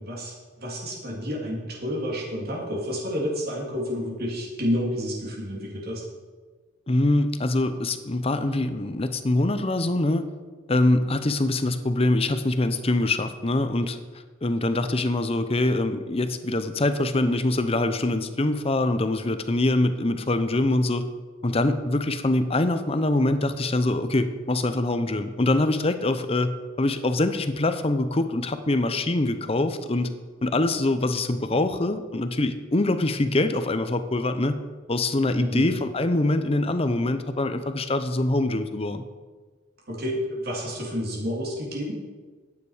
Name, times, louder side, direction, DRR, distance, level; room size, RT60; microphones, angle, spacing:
voice 1, 0.0-6.0 35.3-35.7 39.9-41.9, equal, 50° right, -3 dB, 2.9 m, -30 dB
voice 2, 6.9-10.3 10.7-14.0 14.4-21.1 21.4-30.1 30.4-34.6 34.9-39.0, left 2 dB, 30° left, 10 dB, 0.7 m, -24 dB
11.5 x 9.6 x 5.0 m, 1.4 s
head